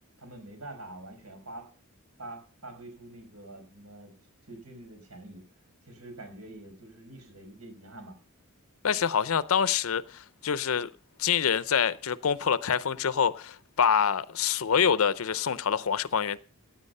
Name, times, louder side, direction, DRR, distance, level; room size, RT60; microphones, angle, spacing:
voice 1, 0.2-1.7 2.2-4.1 4.5-5.4 5.8-8.1, right 2 dB, 75° right, 5.4 m, -45 dB
voice 2, 8.8-10.9 11.2-16.4, left 7 dB, 65° left, 0.6 m, -26 dB
16.5 x 9.2 x 5.4 m
head